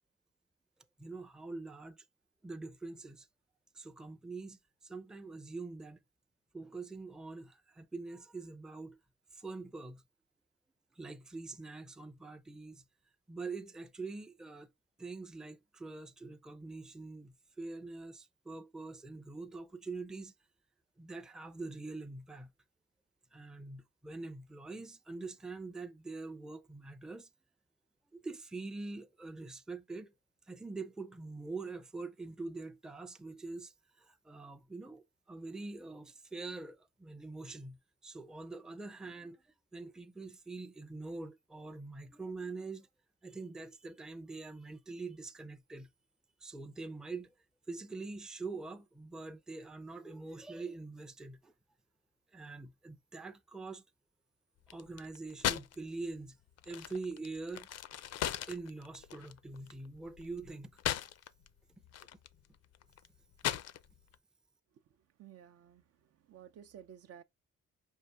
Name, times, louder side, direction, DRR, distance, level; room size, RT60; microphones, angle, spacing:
voice 1, 1.0-2.0 2.4-3.3 3.7-6.0 6.5-9.0 9.3-10.0 10.9-12.8 13.3-14.7 15.0-20.3 21.0-22.5 23.3-27.3 28.1-30.1 30.5-39.4 39.7-42.9 43.2-45.9 46.4-47.3 47.7-51.5 52.3-53.8 54.7-56.4 56.7-57.7 58.5-60.7, right 3 dB, ahead, 0.5 m, -44 dB
sound 1, 54.6-55.8 56.1-61.5 61.8-64.1, left 11 dB, 55° left, 0.5 m, -38 dB
voice 2, 65.2-67.2, right 9 dB, 55° right, 0.5 m, -54 dB
5.6 x 2.5 x 3.4 m
cardioid pair, 90°, 30 cm